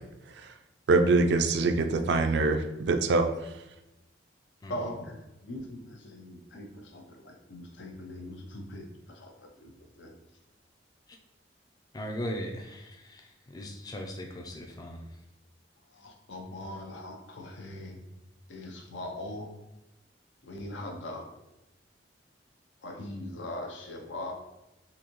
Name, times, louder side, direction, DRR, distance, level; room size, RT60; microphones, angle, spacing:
voice 1, 0.9-3.3, right 3 dB, 65° right, 7 dB, 0.3 m, -24 dB
voice 2, 4.7-10.1 15.9-18.0 18.5-19.5 20.4-21.3 22.8-24.3, left 1 dB, 80° left, 1 dB, 0.7 m, -41 dB
voice 3, 11.9-15.0, equal, 20° left, 2 dB, 0.4 m, -38 dB
3.8 x 2.7 x 3.0 m, 0.95 s
head